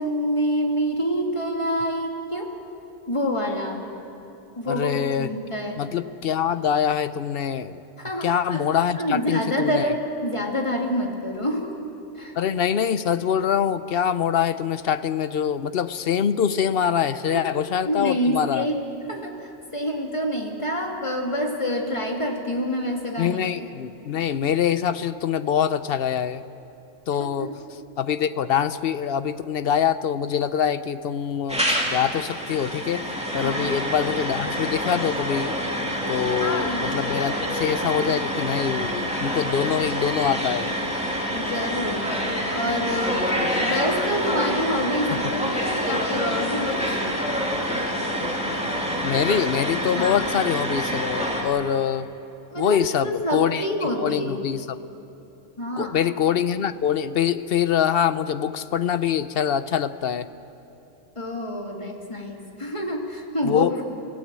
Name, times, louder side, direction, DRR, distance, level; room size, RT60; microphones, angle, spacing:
voice 1, 0.0-2.5 3.1-3.8 4.6-5.8 8.0-8.7 9.0-11.8 12.2-12.3 17.3-17.5 17.8-18.8 19.1-23.4 27.2-27.5 33.4-33.7 36.3-36.9 41.3-42.1 42.5-47.0 50.0-50.3 52.5-54.5 55.6-56.0 61.2-63.8, equal, 25° left, 1 dB, 2.4 m, -27 dB
voice 2, 4.7-5.3 5.8-7.8 8.2-9.9 12.4-18.6 23.2-26.4 27.1-27.5 28.0-33.1 33.3-35.5 36.1-40.7 45.1-45.2 49.0-52.1 52.6-54.8 55.8-60.3 63.4-63.7, left 8 dB, 55° left, 13 dB, 0.8 m, -24 dB
sound 1, 31.5-51.4, equal, 5° right, 2.7 m, -27 dB
27.0 x 15.5 x 7.5 m, 2.9 s
omnidirectional pair, 1.3 m